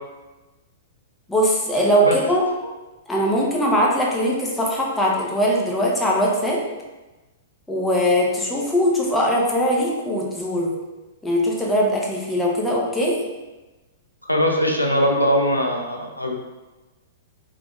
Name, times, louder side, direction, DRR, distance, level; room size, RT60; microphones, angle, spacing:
voice 1, 1.3-2.4 3.1-6.6 7.7-10.8 11.2-13.2, equal, 5° left, -3 dB, 0.8 m, -21 dB
voice 2, 14.2-16.3, equal, 90° left, 1 dB, 0.5 m, -21 dB
4.8 x 3.5 x 2.4 m, 1.1 s
figure-of-eight pair, 105°, 0 cm